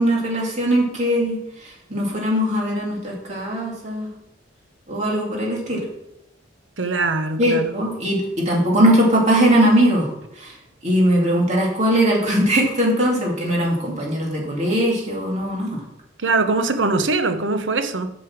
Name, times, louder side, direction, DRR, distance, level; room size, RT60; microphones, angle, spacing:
voice 1, 0.0-4.1 4.9-5.8 7.4-10.1 10.4-10.5 10.8-15.8, equal, 40° right, 2.5 m, -20 dB
voice 2, 6.8-7.7 16.2-18.1, right 3 dB, 85° right, 1.0 m, -22 dB
9.6 x 5.5 x 6.1 m
head